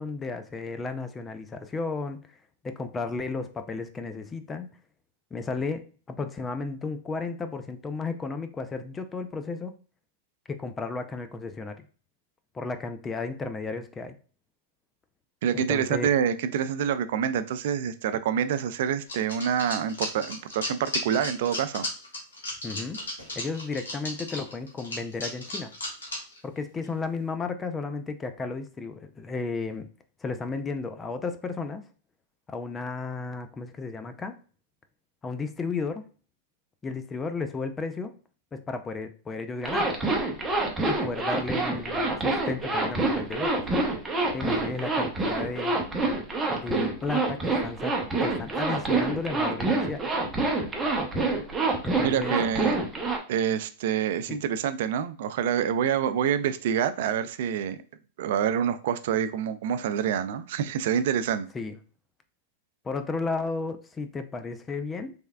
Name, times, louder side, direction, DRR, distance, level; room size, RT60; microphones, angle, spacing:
voice 1, 0.0-2.3 2.6-4.7 5.3-9.7 10.5-11.9 12.5-14.2 15.5-16.1 22.6-23.0 23.4-25.7 26.4-29.9 30.2-31.8 32.5-34.4 35.2-36.1 36.8-38.1 38.5-39.9 40.9-43.6 44.3-45.8 46.5-47.9 48.2-50.0 51.8-52.4 54.3-54.4 61.5-61.8 62.8-65.1, left 4 dB, 20° left, 0.4 m, -33 dB
voice 2, 15.4-21.9 52.0-52.8 53.3-57.8 58.2-61.5, right 8 dB, 65° right, 0.3 m, -27 dB
sound 1, 19.1-26.4 26.8-26.9 27.2-27.3, left 1 dB, 90° left, 1.5 m, -34 dB
Zipper (clothing), 39.6-53.2, right 2 dB, 15° right, 0.8 m, -26 dB
3.5 x 3.2 x 2.2 m
hypercardioid pair, 115°, 0 cm